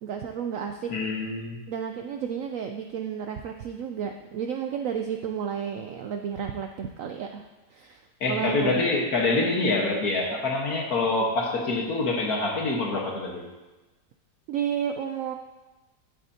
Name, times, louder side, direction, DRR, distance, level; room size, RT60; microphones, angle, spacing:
voice 1, 0.0-0.9 1.7-8.0 8.3-8.8 14.5-15.3, right 8 dB, 75° right, 5 dB, 0.7 m, -32 dB
voice 2, 0.9-1.6 8.2-13.5, left 3 dB, 60° left, -1 dB, 1.9 m, -26 dB
11.5 x 8.6 x 2.8 m, 1.1 s
omnidirectional pair, 1.8 m